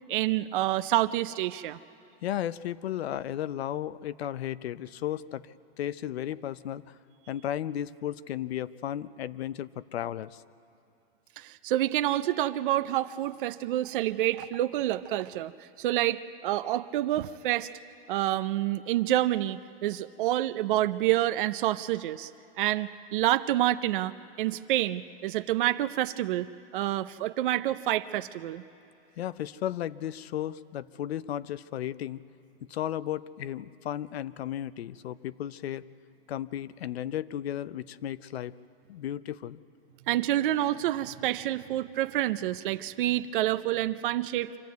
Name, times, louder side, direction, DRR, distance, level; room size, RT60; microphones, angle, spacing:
voice 1, 0.1-1.8 11.4-17.7 18.1-22.3 22.6-28.6 40.1-44.6, right 14 dB, 55° right, 11 dB, 0.6 m, -28 dB
voice 2, 2.2-6.9 7.3-10.4 29.2-32.2 32.7-35.8 36.3-38.5 38.9-39.6, left 11 dB, 85° left, 16 dB, 0.7 m, -34 dB
25.0 x 15.0 x 9.3 m, 2.7 s
supercardioid pair, 160°, 31 cm